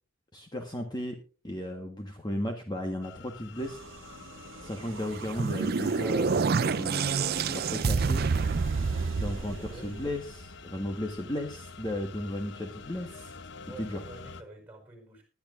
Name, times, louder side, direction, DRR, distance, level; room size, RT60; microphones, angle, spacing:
voice 1, 0.3-1.2 1.4-3.8 4.6-8.3 9.2-13.3 13.8-14.0, left 1 dB, 20° left, 3 dB, 1.4 m, -35 dB
sound 1, 3.0-14.4, left 4 dB, 60° left, 0.7 m, -48 dB
sound 2, 3.5-10.4, right 4 dB, 75° right, 1.2 m, -47 dB
sound 3, 5.0-10.3, right 5 dB, 50° right, 0.5 m, -28 dB
voice 2, 9.6-10.0 13.6-15.2, right 2 dB, 10° right, 4 dB, 5.1 m, -48 dB
20.0 x 11.0 x 2.6 m, 0.35 s
head